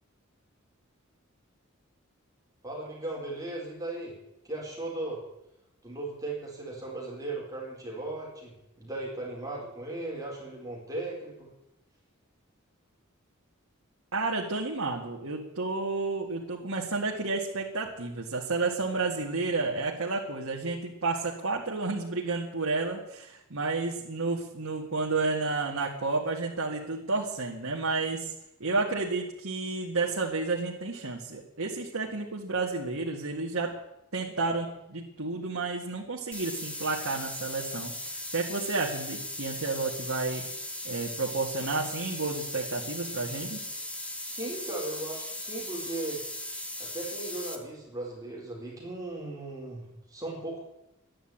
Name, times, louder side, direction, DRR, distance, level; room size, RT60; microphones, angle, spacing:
voice 1, 2.6-4.1 4.4-5.2 5.8-11.5 44.2-46.2 46.8-50.7, right 2 dB, 15° right, -3 dB, 4.4 m, -37 dB
voice 2, 14.1-28.3 28.6-33.7 34.1-37.9 38.3-40.4 40.8-43.6, right 3 dB, 75° right, -2 dB, 2.0 m, -31 dB
sound 1, 36.3-47.6, left 1 dB, 5° left, 1.5 m, -38 dB
13.5 x 10.0 x 8.7 m, 0.89 s
head